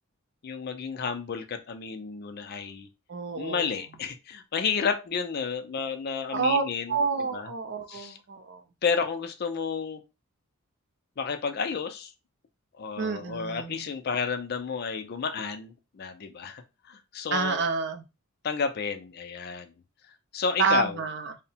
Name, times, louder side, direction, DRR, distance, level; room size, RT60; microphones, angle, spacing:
voice 1, 0.4-2.9 3.4-6.9 7.3-7.5 7.9-8.2 8.8-10.0 11.2-12.1 12.8-16.6 16.9-17.6 18.4-19.7 20.3-21.0, left 5 dB, 45° left, 7 dB, 0.4 m, -31 dB
voice 2, 3.1-3.8 6.3-6.6 6.9-8.6 13.0-13.9 17.3-18.0 20.6-21.4, right 4 dB, 50° right, 8 dB, 0.4 m, -28 dB
2.7 x 2.1 x 2.7 m, 0.27 s
head